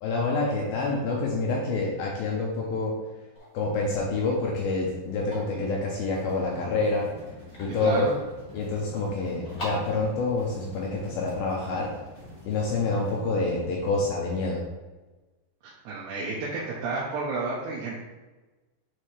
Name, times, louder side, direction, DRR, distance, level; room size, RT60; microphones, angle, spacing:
voice 1, 0.0-2.9 3.5-7.1 7.6-8.1 8.5-11.9 12.5-14.6, left 3 dB, 85° left, -2 dB, 2.2 m, -27 dB
sound 1, 3.3-12.8, equal, 45° left, 1.4 m, -46 dB
sound 2, 6.1-13.2, left 1 dB, 40° right, 2.0 m, -51 dB
sound 3, 6.1-14.5, equal, 55° right, 1.8 m, -48 dB
voice 2, 7.8-8.1 15.6-17.9, right 3 dB, 80° right, -5 dB, 2.9 m, -31 dB
7.4 x 4.2 x 3.3 m, 1.2 s
omnidirectional pair, 5.2 m